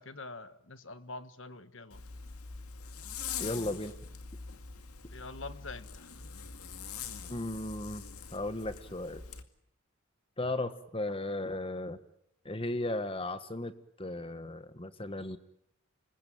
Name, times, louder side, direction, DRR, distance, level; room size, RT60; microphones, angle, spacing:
voice 1, 0.0-2.0 5.1-6.1, left 3 dB, 55° left, 12 dB, 1.5 m, -45 dB
Zipper (clothing), 1.9-9.4, left 6 dB, 85° left, 2.2 m, -43 dB
voice 2, 3.4-3.9 7.3-8.0 8.3-9.2 10.4-12.0 12.4-13.7 14.0-15.4, left 2 dB, 25° left, 11 dB, 1.4 m, -35 dB
27.0 x 21.5 x 9.2 m, 0.75 s
head